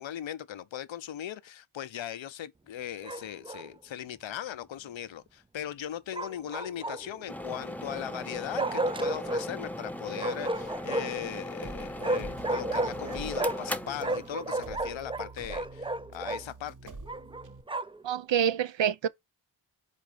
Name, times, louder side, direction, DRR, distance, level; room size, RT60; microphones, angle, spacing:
voice 1, 0.0-16.9, left 10 dB, 80° left, 0.7 m, -39 dB
Bark, 3.0-3.7 6.1-7.2 8.6-9.5 10.2-11.3 12.0-13.7 14.0-16.4 17.1-18.0, right 2 dB, 10° right, 0.4 m, -32 dB
sound 1, 7.3-14.9, left 1 dB, 5° left, 0.8 m, -38 dB
sound 2, 11.6-17.6, right 3 dB, 40° right, 1.1 m, -46 dB
voice 2, 18.0-19.1, right 9 dB, 70° right, 0.6 m, -27 dB
5.3 x 3.6 x 5.0 m
cardioid pair, 45°, 46 cm